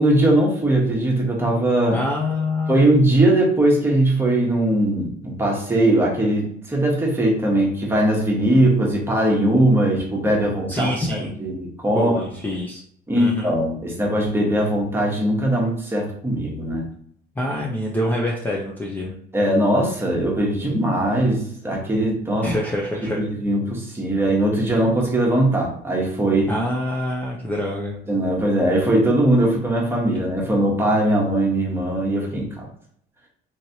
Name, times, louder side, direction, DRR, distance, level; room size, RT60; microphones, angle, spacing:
voice 1, 0.0-2.0 2.7-10.9 11.2-12.2 13.1-16.9 19.3-22.5 23.2-26.5 28.1-32.7, right 1 dB, 15° right, -2 dB, 1.0 m, -20 dB
voice 2, 1.9-2.8 10.7-11.4 11.9-12.8 13.2-13.5 17.4-19.1 22.4-23.2 26.5-28.0, left 1 dB, 10° left, -2 dB, 0.5 m, -25 dB
3.0 x 2.7 x 2.7 m, 0.64 s
cardioid pair, 110°, 17 cm